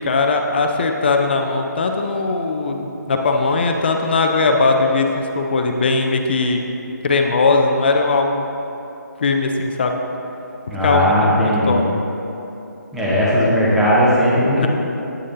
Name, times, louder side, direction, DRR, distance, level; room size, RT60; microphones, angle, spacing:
voice 1, 0.0-6.6 7.0-8.5 9.2-10.0 10.8-11.8 14.5-14.7, left 3 dB, 35° left, 4 dB, 0.5 m, -19 dB
voice 2, 10.7-11.8 12.9-14.7, equal, 5° right, -9 dB, 0.9 m, -17 dB
8.8 x 6.4 x 2.6 m, 2.9 s
figure-of-eight pair, 155°, 10 cm